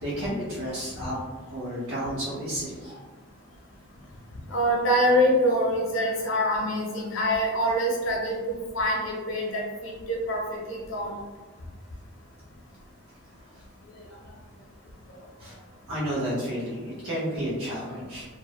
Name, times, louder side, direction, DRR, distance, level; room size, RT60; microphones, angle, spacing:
voice 1, 0.0-1.2 1.5-2.9 15.4-15.6 15.9-18.3, equal, 85° right, -9 dB, 0.9 m, -31 dB
voice 2, 4.5-11.1, equal, 65° left, -1 dB, 0.6 m, -25 dB
2.5 x 2.0 x 2.8 m, 1.3 s
head